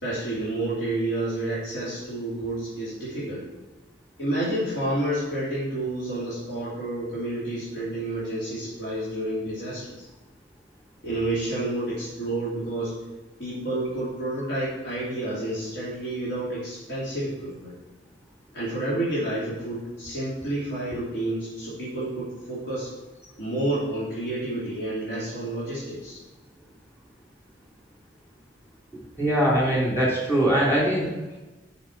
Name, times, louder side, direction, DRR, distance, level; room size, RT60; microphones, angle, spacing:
voice 1, 0.0-3.4 4.2-10.0 11.0-12.9 13.4-17.7 18.5-22.9 23.4-26.2, right 1 dB, 80° left, -9 dB, 3.0 m, -29 dB
voice 2, 29.2-31.1, right 1 dB, 10° left, -6 dB, 3.3 m, -22 dB
6.6 x 6.5 x 6.0 m, 1.1 s
head